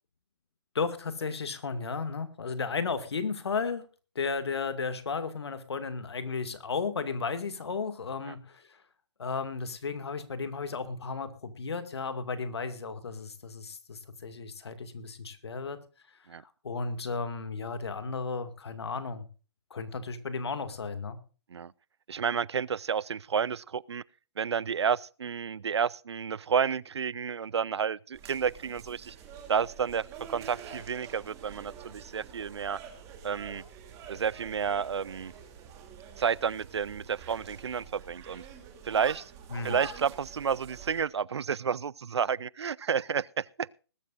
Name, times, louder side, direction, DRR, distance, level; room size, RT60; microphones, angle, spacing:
voice 1, 0.7-3.8 4.2-8.6 9.2-15.8 16.6-19.3 19.7-21.2 39.5-39.8, left 4 dB, 70° left, 2.2 m, -34 dB
voice 2, 22.1-24.0 24.4-29.2 29.5-32.8 33.2-33.6 34.1-35.3 36.2-38.4 38.8-39.3 39.6-43.8, right 7 dB, 80° right, 0.5 m, -31 dB
sound 1, 28.1-41.0, right 7 dB, 20° right, 3.0 m, -47 dB
20.0 x 12.5 x 2.5 m
hypercardioid pair, 145°, 14 cm